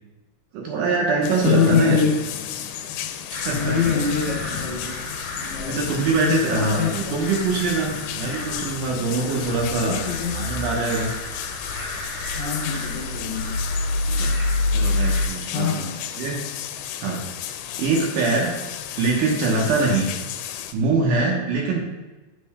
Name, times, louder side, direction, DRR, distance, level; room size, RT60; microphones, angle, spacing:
voice 1, 0.5-2.0 3.3-3.8 5.7-10.0 10.3-11.1 14.1-14.3 14.7-15.8 16.2-16.3 17.0-17.2 17.8-18.5 19.0-20.1 20.7-21.8, right 3 dB, 70° right, -1 dB, 2.1 m, -23 dB
sound 1, 1.2-20.7, left 10 dB, 85° left, 2.7 m, -33 dB
voice 2, 1.4-2.2 3.5-5.0 5.5-6.9 9.9-10.5 12.4-13.6 15.5-16.1, left 7 dB, 55° left, -8 dB, 2.4 m, -24 dB
sound 2, 3.3-15.3, left 1 dB, 30° right, 1.9 m, -29 dB
9.2 x 7.8 x 2.3 m, 1.2 s
omnidirectional pair, 4.8 m